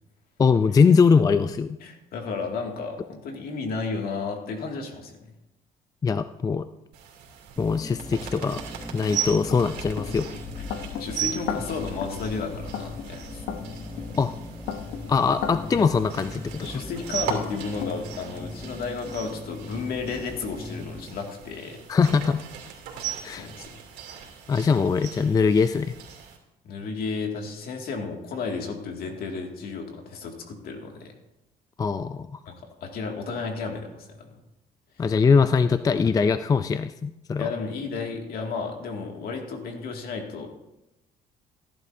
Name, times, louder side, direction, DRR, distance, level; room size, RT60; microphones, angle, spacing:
voice 1, 0.4-1.8 6.0-6.7 7.6-8.6 8.9-10.3 14.2-14.3 15.1-16.6 21.9-22.4 23.2-23.5 24.5-25.9 31.8-32.3 35.0-37.5, left 5 dB, 20° left, 12 dB, 0.4 m, -22 dB
voice 2, 1.8-5.3 11.0-13.2 16.6-21.8 23.3-23.8 24.1-24.7 26.6-31.1 32.5-34.4 37.4-40.5, left 4 dB, 65° left, 2 dB, 2.2 m, -33 dB
sound 1, 6.9-26.4, right 8 dB, 75° right, 3.1 m, -38 dB
sound 2, 7.6-21.1, left 1 dB, 5° left, 0.8 m, -40 dB
sound 3, 8.1-8.2 8.9-17.9, left 8 dB, 90° left, 0.8 m, -37 dB
16.5 x 11.0 x 2.7 m, 0.91 s
cardioid pair, 110°, 17 cm